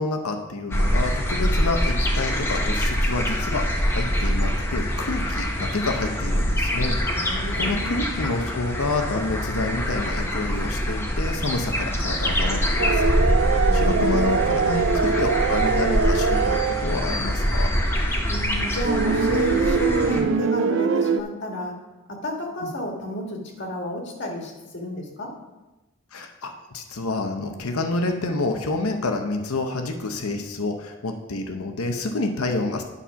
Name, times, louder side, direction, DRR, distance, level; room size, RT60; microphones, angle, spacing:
voice 1, 0.0-13.1 13.7-17.7 20.1-20.3 22.6-22.7 26.1-32.8, left 2 dB, 85° left, 5 dB, 0.8 m, -28 dB
sound 1, 0.7-20.2, equal, 10° left, 0.8 m, -24 dB
voice 2, 7.1-8.1 13.4-14.3 18.3-21.8 22.1-25.3, equal, 55° left, 1 dB, 1.6 m, -32 dB
sound 2, 12.8-17.0 18.8-21.2, right 5 dB, 55° right, 0.4 m, -23 dB
9.8 x 4.3 x 5.7 m, 1.1 s
head